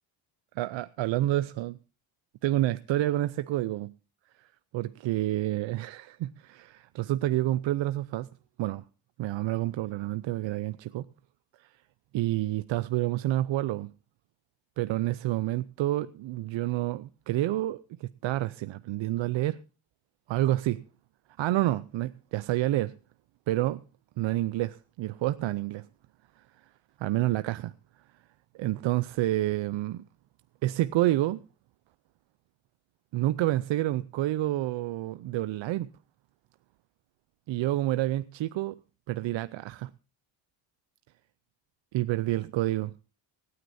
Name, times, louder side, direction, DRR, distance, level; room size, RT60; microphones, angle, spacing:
voice 1, 0.6-1.8 2.4-3.9 4.4-4.5 4.7-8.3 8.6-8.8 9.2-11.1 11.6-11.7 12.1-13.9 14.8-19.6 20.3-20.8 21.4-22.9 23.5-23.8 24.2-25.9 26.4-26.5 27.0-27.7 28.5-30.0 30.6-31.4 33.1-35.9 37.5-38.8 39.1-39.9 41.9-42.9, right 15 dB, 65° right, 0.6 m, -28 dB
25.0 x 9.7 x 2.7 m
cardioid pair, 105°, 49 cm